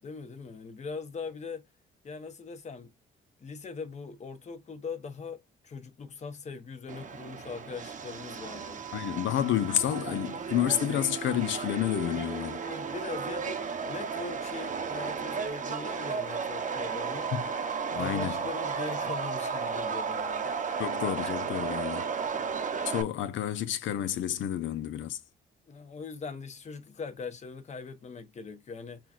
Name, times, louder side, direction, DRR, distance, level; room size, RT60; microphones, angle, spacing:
voice 1, 0.0-1.6 2.0-2.9 3.4-5.4 5.6-8.8 12.1-12.2 12.6-13.6 13.9-17.3 17.9-20.5 25.7-29.0, left 4 dB, 35° left, 0.9 m, -41 dB
Subway metro underground, 6.9-23.0, right 5 dB, 40° right, 0.7 m, -34 dB
voice 2, 8.9-12.6 17.3-17.4 17.9-18.4 20.8-22.1 22.9-25.2, left 11 dB, 75° left, 0.6 m, -30 dB
5.8 x 2.3 x 2.4 m
cardioid pair, 90°, 20 cm